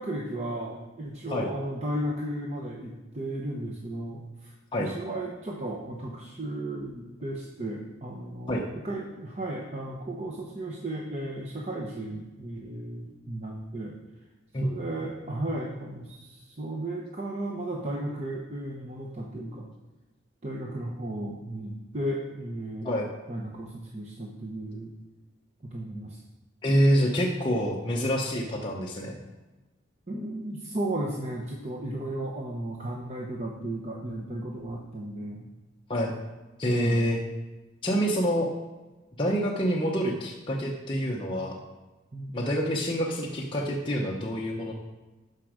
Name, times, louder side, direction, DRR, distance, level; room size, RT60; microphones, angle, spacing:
voice 1, 0.0-4.5 4.8-14.0 14.6-19.7 20.4-23.0 23.3-24.9 25.6-26.2 30.1-35.5 36.7-37.1 42.1-42.5, right 1 dB, 35° right, -2 dB, 0.9 m, -35 dB
voice 2, 26.6-29.2 35.9-36.1 36.6-37.2 37.8-38.5 39.2-41.6 42.3-44.7, equal, 25° left, -2 dB, 0.8 m, -26 dB
12.0 x 5.2 x 5.0 m, 1.2 s
head